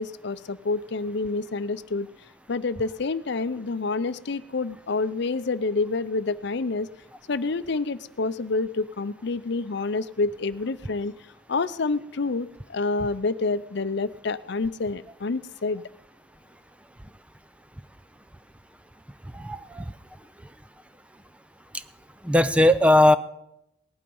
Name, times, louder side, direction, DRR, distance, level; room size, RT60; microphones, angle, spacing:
voice 1, 0.0-2.1 2.5-6.9 7.3-11.1 11.5-15.8, left 3 dB, 60° left, 13 dB, 0.6 m, -28 dB
voice 2, 19.4-19.8 22.2-23.2, left 1 dB, 5° right, 13 dB, 0.5 m, -18 dB
18.0 x 11.5 x 5.4 m, 0.81 s
head